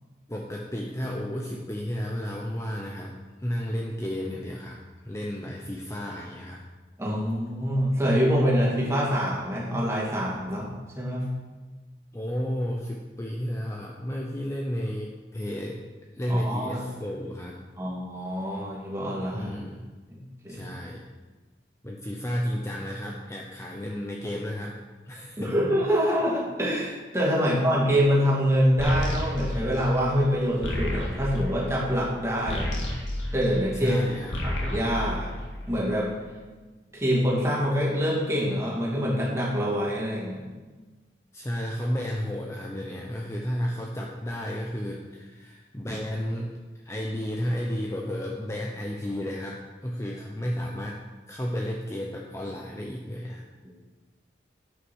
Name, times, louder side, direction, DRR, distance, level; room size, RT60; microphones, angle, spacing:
voice 1, 0.3-3.1 3.4-6.6 12.1-15.8 16.1-17.6 19.3-19.9 20.5-21.1 21.8-24.8 25.1-25.6 27.4-27.5 33.7-34.4 41.3-46.5 46.8-51.0 51.3-53.4, equal, 15° left, -1 dB, 0.7 m, -32 dB
voice 2, 7.0-10.7 11.0-11.3 16.3-16.8 17.8-19.5 20.1-20.6 25.4-32.7 33.3-34.0 34.4-35.3 35.7-36.1 36.9-40.4 53.6-53.7, equal, 15° right, -5 dB, 2.4 m, -25 dB
sound 1, 28.8-34.0 34.2-36.0, left 1 dB, 85° left, 1.9 m, -31 dB
9.7 x 5.7 x 6.3 m, 1.3 s
head